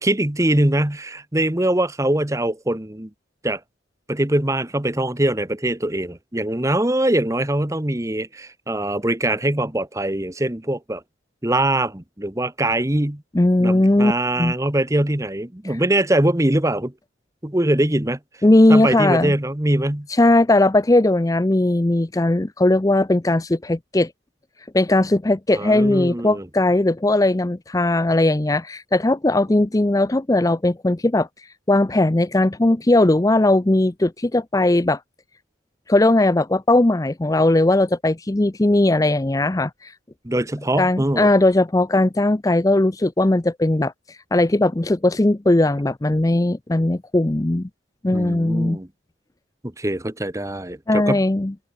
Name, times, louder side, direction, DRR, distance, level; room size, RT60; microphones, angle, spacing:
voice 1, 0.0-3.1 3.4-3.6 4.1-11.0 11.4-13.2 13.6-16.9 17.4-18.2 18.7-20.1 25.5-26.5 40.2-41.3 48.1-48.9 49.8-51.2, right 1 dB, 15° right, 1.2 m, -22 dB
voice 2, 13.3-14.1 14.4-14.5 15.6-15.8 18.4-19.3 20.1-24.1 24.7-31.3 31.7-35.0 35.9-39.9 40.8-47.7 48.0-48.8 50.9-51.5, left 2 dB, 20° left, 0.5 m, -18 dB
head